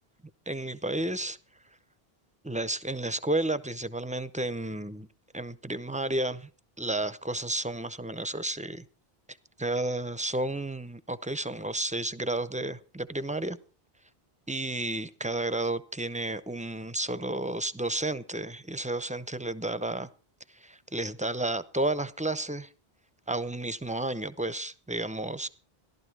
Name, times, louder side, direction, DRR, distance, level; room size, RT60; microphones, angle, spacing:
voice 1, 0.5-1.4 2.4-5.1 5.3-6.5 6.8-8.8 9.6-13.6 14.5-20.1 20.5-22.7 23.3-25.5, right 2 dB, 10° right, 0.4 m, -32 dB
15.0 x 12.0 x 4.6 m
omnidirectional pair, 1.1 m